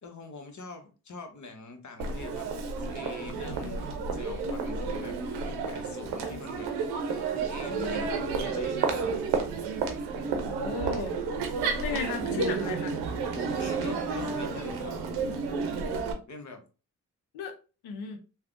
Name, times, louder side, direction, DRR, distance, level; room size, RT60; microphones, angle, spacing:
voice 1, 0.0-6.7 7.0-9.1 13.6-15.3 15.9-16.6, left 3 dB, 50° left, 1.0 m, -44 dB
Crowd, 2.0-16.1, right 5 dB, 85° right, 0.7 m, -31 dB
voice 2, 7.7-8.1 10.5-11.2 11.8-13.0 17.3-17.6 17.8-18.2, left 5 dB, 80° left, 0.7 m, -35 dB
3.3 x 2.2 x 2.5 m
hypercardioid pair, 40°, 38 cm